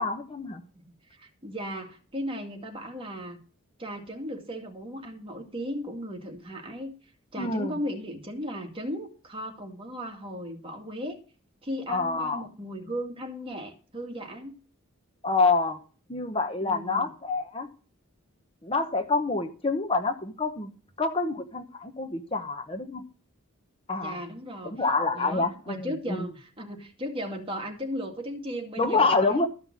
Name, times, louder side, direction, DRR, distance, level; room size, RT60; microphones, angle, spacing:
voice 1, 0.0-0.6 7.4-7.7 11.9-12.5 15.2-15.8 16.1-17.7 18.6-20.7 21.0-23.0 23.9-24.2 24.6-26.2 28.8-29.5, left 3 dB, 25° left, 6 dB, 1.0 m, -27 dB
voice 2, 0.7-3.4 3.8-6.9 7.3-11.2 11.6-14.6 16.6-17.1 24.0-24.8 25.1-29.5, equal, 25° right, 3 dB, 2.2 m, -36 dB
13.5 x 5.5 x 7.4 m, 0.37 s
head